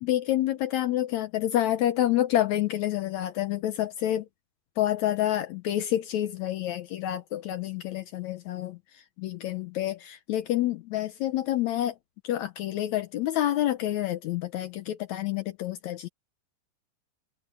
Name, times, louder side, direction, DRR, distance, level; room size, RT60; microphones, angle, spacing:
voice 1, 0.0-4.3 4.8-8.8 9.2-12.0 12.2-16.1, left 13 dB, 75° left, 1.8 m, -28 dB
open air
omnidirectional pair, 3.9 m